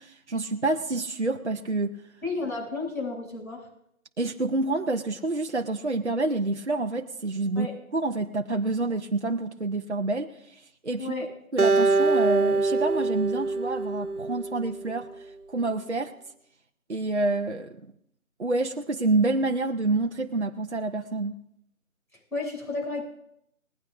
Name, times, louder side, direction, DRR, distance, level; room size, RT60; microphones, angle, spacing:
voice 1, 0.0-2.0 4.2-11.1 11.5-16.1 16.9-17.8 18.4-21.4, right 2 dB, 50° right, 4 dB, 0.8 m, -28 dB
voice 2, 2.2-3.6 7.5-7.7 11.0-11.3 22.3-23.0, left 3 dB, 75° left, -2 dB, 7.3 m, -32 dB
Acoustic guitar, 11.6-14.9, right 3 dB, 85° right, 1.4 m, -24 dB
19.5 x 15.5 x 2.6 m, 0.74 s
figure-of-eight pair, 180°, 43 cm